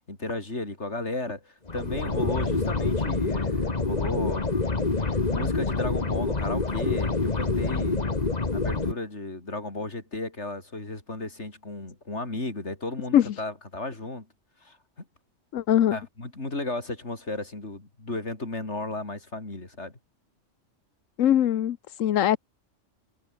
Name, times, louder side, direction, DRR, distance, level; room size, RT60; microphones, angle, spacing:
voice 1, 0.1-4.5 5.0-8.1 8.5-14.3 14.6-15.1 15.9-19.9, left 2 dB, 60° left, 4.7 m, -34 dB
sound 1, 1.7-8.9, left 3 dB, 35° left, 1.8 m, -27 dB
voice 2, 15.5-16.0 21.2-22.4, left 11 dB, 85° left, 1.2 m, -21 dB
omnidirectional pair, 1.3 m